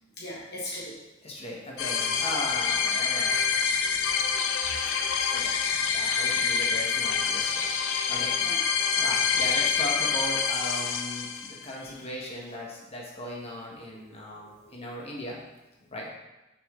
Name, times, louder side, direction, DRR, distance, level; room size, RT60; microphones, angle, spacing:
voice 1, 0.2-1.0 4.7-5.7 8.4-8.6 13.9-14.0 14.4-14.7, left 1 dB, 55° left, -5 dB, 1.4 m, -40 dB
voice 2, 1.2-3.4 5.3-5.6 5.9-7.7 8.1-8.3 8.9-15.4 15.9-16.1, left 1 dB, 30° left, -2 dB, 1.3 m, -37 dB
sound 1, 1.8-11.7, left 6 dB, 85° left, 0.6 m, -26 dB
6.1 x 6.1 x 3.7 m, 1.0 s
head